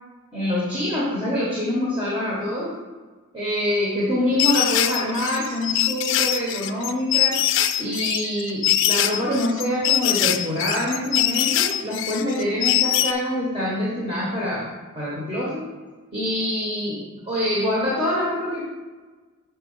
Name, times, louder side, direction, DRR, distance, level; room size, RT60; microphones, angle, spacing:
voice 1, 0.3-2.7 3.3-7.4 7.8-14.7 14.9-15.6 16.1-18.6, left 1 dB, 25° right, -7 dB, 1.4 m, -25 dB
sound 1, 4.4-13.1, left 12 dB, 60° left, 0.4 m, -22 dB
6.1 x 4.3 x 5.5 m, 1.3 s
head